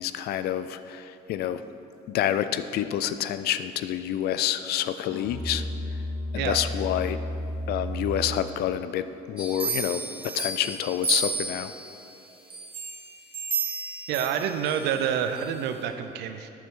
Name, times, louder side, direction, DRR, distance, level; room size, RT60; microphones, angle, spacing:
voice 1, 0.0-1.6 2.1-5.6 6.3-7.2 7.7-11.7, left 11 dB, 70° left, 12 dB, 0.4 m, -28 dB
Musical instrument, 5.1-8.6, left 1 dB, 10° left, 0.9 m, -33 dB
sound 1, 9.4-11.9 12.5-14.9 15.4-15.5, right 4 dB, 30° right, 1.7 m, -32 dB
voice 2, 14.1-16.5, right 8 dB, 85° right, 8 dB, 0.6 m, -28 dB
8.3 x 6.9 x 3.7 m, 2.7 s
cardioid pair, 110°, 17 cm